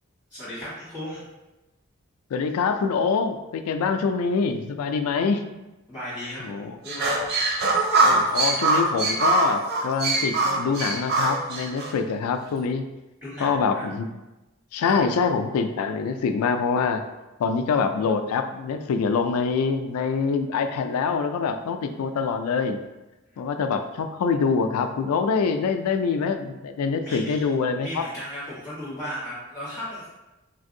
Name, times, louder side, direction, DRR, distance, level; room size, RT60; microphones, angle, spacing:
voice 1, 0.3-1.2 5.9-7.2 13.2-13.8 14.8-15.0 27.1-27.5 27.8-30.1, equal, 5° right, -11 dB, 1.2 m, -35 dB
voice 2, 2.3-5.4 6.4-6.8 7.6-12.8 13.4-14.1 14.7-17.0 17.4-22.8 23.4-28.0, left 5 dB, 90° left, 8 dB, 0.3 m, -25 dB
sound 1, 6.8-11.9, right 3 dB, 45° right, 0.4 m, -22 dB
3.3 x 2.5 x 2.6 m, 1.0 s
head